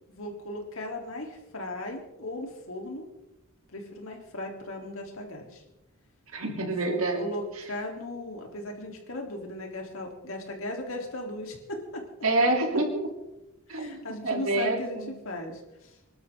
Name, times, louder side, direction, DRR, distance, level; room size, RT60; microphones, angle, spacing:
voice 1, 0.1-3.1 3.7-5.6 6.7-12.1 13.7-16.0, left 1 dB, 70° left, 1 dB, 3.6 m, -37 dB
voice 2, 6.3-7.2 12.2-13.1 13.7-14.8, right 2 dB, 80° right, 2 dB, 3.5 m, -27 dB
26.0 x 12.5 x 3.9 m, 0.93 s
head